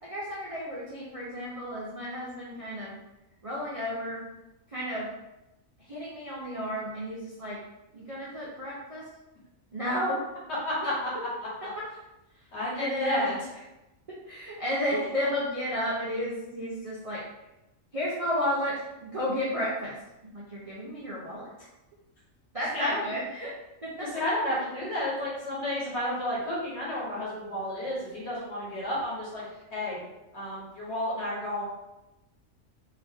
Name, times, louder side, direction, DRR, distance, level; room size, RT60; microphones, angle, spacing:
voice 1, 0.0-3.0 3.4-4.2 4.7-5.1 5.9-7.6 7.9-9.1 9.7-10.2 10.8-10.9 11.8-11.9 12.8-13.4 14.1-17.2 17.9-20.0 20.2-21.7 22.5-23.5 23.8-24.1, equal, 40° right, -7 dB, 0.5 m, -32 dB
voice 2, 10.6-11.1 11.4-11.5 12.5-13.3 22.7-23.0 24.0-29.4 29.7-30.0 30.3-31.6, left 1 dB, 55° left, -6 dB, 1.5 m, -31 dB
2.9 x 2.8 x 3.5 m, 0.98 s
omnidirectional pair, 1.4 m